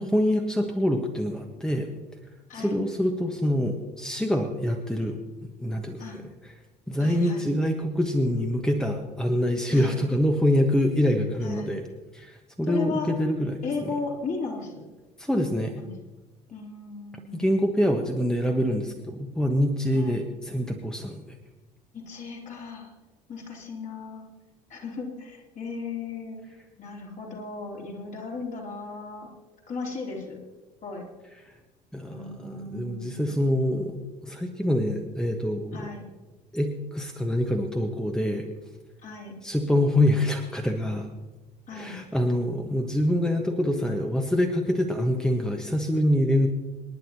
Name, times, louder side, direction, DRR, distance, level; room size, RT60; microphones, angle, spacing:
voice 1, 0.0-1.9 2.5-6.5 6.9-11.8 12.1-13.9 15.2-15.8 17.3-21.2 31.9-34.0 34.2-35.9 36.5-38.5 39.4-41.1 41.7-46.5, left 1 dB, 5° left, 4 dB, 1.4 m, -25 dB
voice 2, 7.0-7.5 9.7-10.0 11.4-11.7 12.7-13.1 13.6-14.8 15.8-15.9 16.5-17.6 19.9-20.3 21.9-22.9 23.3-24.3 24.7-26.4 26.8-29.3 29.7-30.4 30.8-31.1 32.1-33.4 35.7-36.0 39.0-39.3 41.7-42.0, left 4 dB, 40° left, -1 dB, 3.7 m, -36 dB
26.5 x 11.0 x 3.0 m, 1.2 s
figure-of-eight pair, 60°, 21 cm